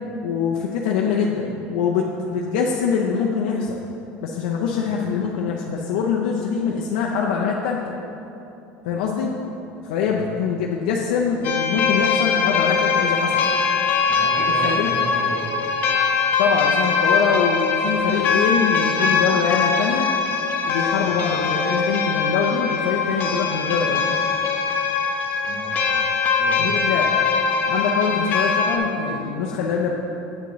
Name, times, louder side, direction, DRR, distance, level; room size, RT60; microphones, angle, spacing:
voice 1, 0.2-3.8 4.2-7.9 8.8-9.3 9.8-13.5 14.6-14.9 16.4-20.1 20.7-24.1 26.6-27.1 27.7-29.9, left 6 dB, 85° left, -2 dB, 0.6 m, -23 dB
sound 1, 11.4-28.8, left 5 dB, 40° left, 0.6 m, -22 dB
voice 2, 14.1-15.5 21.0-21.3 25.4-26.0 26.3-26.7 28.5-28.6, right 1 dB, 60° right, -5 dB, 1.6 m, -35 dB
7.7 x 6.9 x 3.1 m, 2.9 s
supercardioid pair, 135°, 5 cm